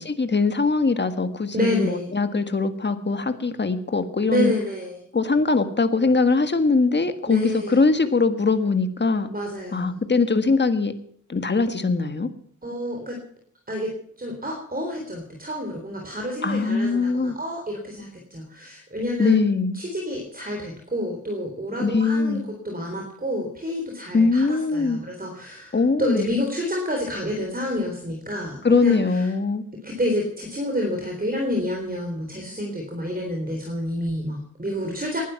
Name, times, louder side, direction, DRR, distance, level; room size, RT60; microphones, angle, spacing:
voice 1, 0.0-4.5 5.1-9.3 9.7-10.9 11.3-12.3 16.4-17.4 19.2-19.8 21.8-22.4 24.1-25.0 25.7-26.3 28.6-29.6, left 4 dB, 35° left, 9 dB, 1.6 m, -21 dB
voice 2, 1.5-2.1 4.3-5.0 7.3-7.8 9.3-10.0 12.6-13.2 13.7-19.4 19.7-29.3 29.8-35.2, left 1 dB, 30° right, 1 dB, 3.7 m, -29 dB
19.5 x 12.0 x 5.9 m, 0.65 s
wide cardioid pair, 95°, 31 cm